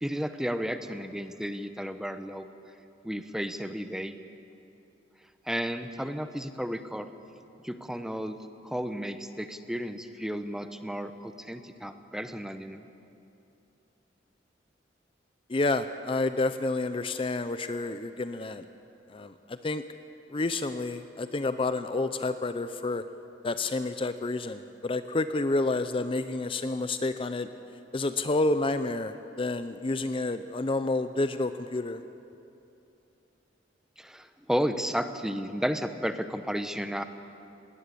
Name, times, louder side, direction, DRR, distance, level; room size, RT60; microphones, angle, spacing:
voice 1, 0.0-2.5 3.0-4.1 5.5-7.1 7.6-8.4 8.6-12.8 34.0-37.0, equal, 5° right, 9 dB, 0.8 m, -33 dB
voice 2, 15.5-18.7 19.1-19.8 20.3-23.0 23.4-27.5 27.9-32.0, left 2 dB, 30° left, 11 dB, 0.5 m, -29 dB
19.5 x 18.5 x 8.5 m, 2.7 s
head